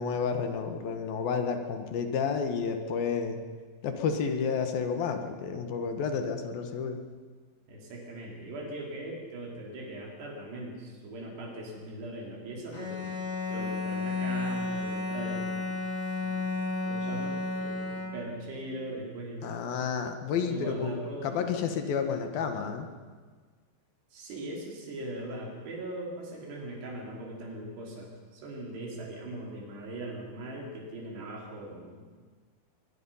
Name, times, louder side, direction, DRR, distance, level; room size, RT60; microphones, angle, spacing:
voice 1, 0.0-3.4 3.8-7.0 19.4-22.9, left 6 dB, 70° left, 6 dB, 3.2 m, -31 dB
voice 2, 7.7-15.8 16.2-16.5 16.8-19.7 20.4-21.6 24.1-32.1, right 1 dB, 90° right, -1 dB, 5.9 m, -40 dB
Bowed string instrument, 12.7-18.5, left 3 dB, 15° left, 1.7 m, -32 dB
22.5 x 21.5 x 5.7 m, 1.5 s
omnidirectional pair, 4.6 m